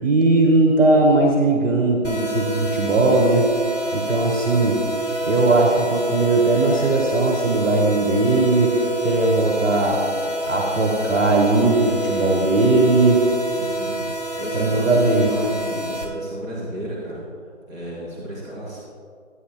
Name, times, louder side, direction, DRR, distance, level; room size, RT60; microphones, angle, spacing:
voice 1, 0.0-3.5 3.9-4.8 5.2-10.0 10.5-13.3 14.5-15.3, right 2 dB, 70° right, 0 dB, 1.7 m, -18 dB
sound 1, 2.0-16.0, right 1 dB, 70° left, 2.9 m, -28 dB
voice 2, 13.6-18.8, equal, 15° right, -18 dB, 2.9 m, -33 dB
16.0 x 9.8 x 2.2 m, 2.1 s
figure-of-eight pair, 180°, 39 cm